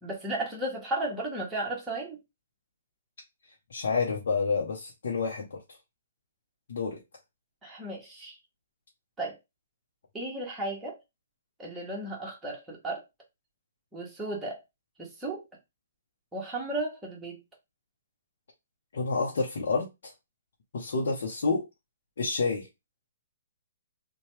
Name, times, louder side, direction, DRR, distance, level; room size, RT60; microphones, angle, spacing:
voice 1, 0.0-2.2 7.6-8.4 9.2-9.4 10.1-11.0 11.6-13.0 13.9-14.6 15.0-15.4 16.3-17.4, right 2 dB, 10° right, 1.2 m, -34 dB
voice 2, 3.7-5.6 6.7-7.0 18.9-20.1 20.7-21.7 22.2-22.7, left 4 dB, 70° left, 0.7 m, -29 dB
2.8 x 2.3 x 3.1 m
hypercardioid pair, 135°, 0 cm